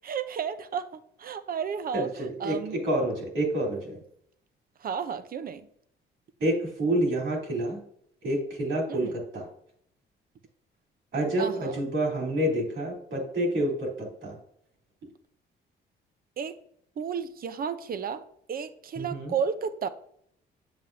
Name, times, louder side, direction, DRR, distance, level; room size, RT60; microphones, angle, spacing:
voice 1, 0.0-2.8 4.8-5.7 8.9-9.2 11.4-11.8 16.4-16.6 17.0-18.2 18.5-19.9, right 7 dB, 45° right, 12 dB, 0.7 m, -33 dB
voice 2, 1.9-4.0 6.4-7.8 8.2-9.5 11.1-14.4 18.9-19.4, right 1 dB, 70° right, -2 dB, 3.4 m, -28 dB
7.7 x 7.4 x 2.7 m, 0.69 s
cardioid pair, 90°, 20 cm